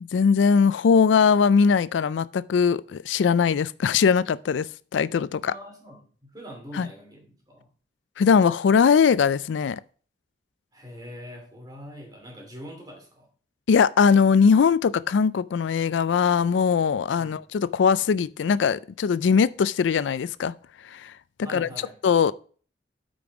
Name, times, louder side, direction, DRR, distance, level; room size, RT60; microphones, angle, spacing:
voice 1, 0.0-5.5 6.7-6.9 8.2-9.8 13.7-20.5 20.9-21.1 21.5-21.7 22.0-22.3, left 6 dB, 90° left, 0.4 m, -20 dB
voice 2, 5.4-7.7 10.7-13.3 17.2-17.4 21.4-22.0, equal, 20° right, 2.5 m, -43 dB
8.8 x 5.3 x 4.7 m
head